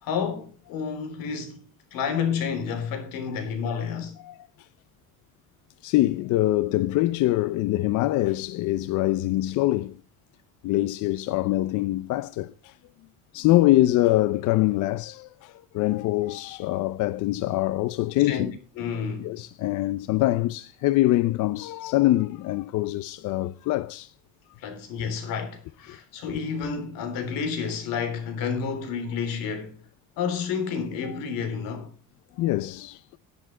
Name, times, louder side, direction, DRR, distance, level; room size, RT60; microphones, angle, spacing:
voice 1, 0.0-1.7 1.9-4.2 18.2-18.5 18.8-19.4 24.6-29.8 30.2-31.9, left 6 dB, 85° left, 3.6 m, -30 dB
voice 2, 5.8-10.0 10.6-12.8 13.3-18.5 19.2-24.1 25.9-26.0 32.4-33.0, left 16 dB, 65° left, 0.6 m, -24 dB
11.0 x 10.5 x 5.5 m
cardioid pair, 160°, 33 cm